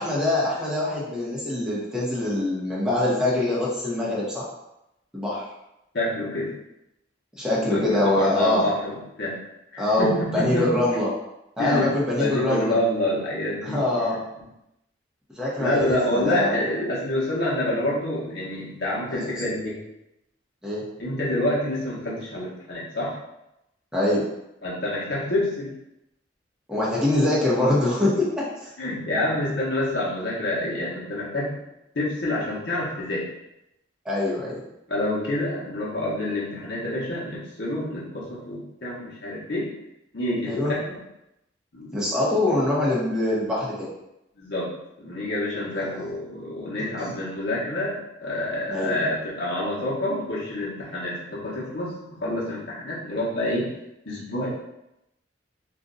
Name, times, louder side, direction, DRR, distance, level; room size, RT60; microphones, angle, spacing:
voice 1, 0.0-4.5 5.1-5.5 7.4-8.7 9.8-11.1 11.6-12.8 13.6-14.2 15.4-16.6 19.1-19.3 20.6-20.8 23.9-24.2 26.7-28.7 34.0-34.6 40.5-40.7 41.9-43.9 45.7-46.1 47.0-47.1 48.7-49.1, left 1 dB, 5° right, -7 dB, 0.7 m, -24 dB
voice 2, 5.9-6.5 7.6-9.4 9.7-10.8 11.6-14.2 15.6-19.8 21.0-23.2 24.6-25.7 28.8-31.6 31.9-33.2 34.9-39.7 40.1-41.0 41.7-42.0 44.4-44.7 45.0-53.7 54.1-54.5, left 1 dB, 70° left, -7 dB, 0.9 m, -27 dB
2.6 x 2.2 x 3.8 m, 0.88 s
head